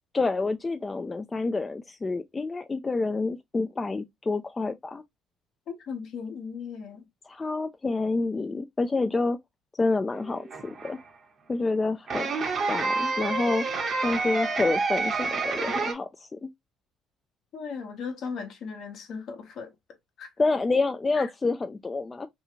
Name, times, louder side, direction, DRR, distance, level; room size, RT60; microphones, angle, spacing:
voice 1, 0.1-5.0 7.3-9.4 9.8-11.0 11.5-12.3 12.7-13.6 14.0-16.5 20.4-22.3, left 3 dB, 25° left, 0.3 m, -28 dB
voice 2, 5.7-7.0 17.5-19.7 20.2-20.3 21.1-21.3, left 5 dB, 65° left, 0.9 m, -37 dB
sound 1, 10.1-11.0 12.1-15.9, right 4 dB, 50° right, 0.8 m, -29 dB
2.6 x 2.4 x 2.7 m
supercardioid pair, 65°, 0 cm